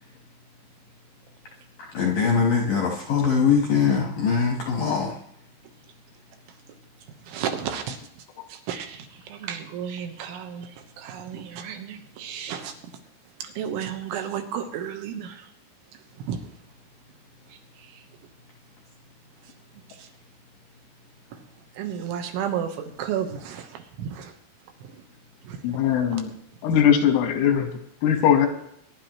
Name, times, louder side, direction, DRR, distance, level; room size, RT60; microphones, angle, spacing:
voice 1, 1.9-5.2, left 6 dB, 70° left, -1 dB, 2.1 m, -22 dB
voice 2, 7.2-12.8 13.4-15.5 15.9-16.5 17.5-18.1 19.4-19.5 19.9-20.1 21.3-21.4 21.7-24.3 24.8-25.0 25.4-26.0, right 8 dB, 75° right, 5 dB, 3.4 m, -33 dB
voice 3, 25.6-26.3 26.6-27.7 28.0-28.5, left 9 dB, 85° left, 6 dB, 4.1 m, -20 dB
23.0 x 11.0 x 3.1 m, 0.73 s
omnidirectional pair, 5.8 m